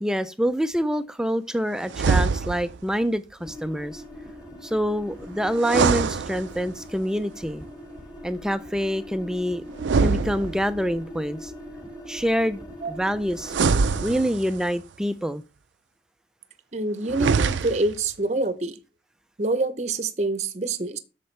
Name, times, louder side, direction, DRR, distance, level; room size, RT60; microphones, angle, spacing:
voice 1, 0.0-4.0 4.6-7.6 8.2-9.6 10.0-11.5 12.1-12.6 12.9-13.5 14.0-15.4, equal, 5° right, 0.3 m, -26 dB
sound 1, 1.9-2.8 5.5-6.9 9.8-10.9 13.4-14.7 17.0-18.0, right 5 dB, 90° right, 0.5 m, -24 dB
sound 2, 3.4-14.2, equal, 20° left, 2.0 m, -42 dB
voice 2, 16.7-18.8 19.4-21.0, right 2 dB, 40° right, 0.7 m, -26 dB
8.5 x 6.6 x 3.2 m
head